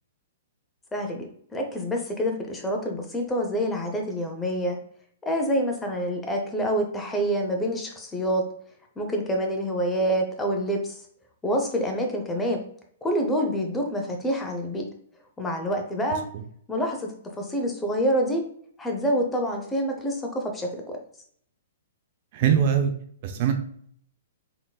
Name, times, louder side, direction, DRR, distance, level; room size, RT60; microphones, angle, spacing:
voice 1, 0.9-4.8 5.2-8.4 9.0-11.0 11.4-12.6 13.0-14.9 15.4-16.2 16.7-18.4 18.8-21.0, equal, 10° left, 2 dB, 0.8 m, -27 dB
voice 2, 22.3-22.9 23.2-23.5, right 8 dB, 50° right, 6 dB, 0.6 m, -21 dB
3.9 x 3.7 x 2.3 m, 0.62 s
hypercardioid pair, 125°, 0 cm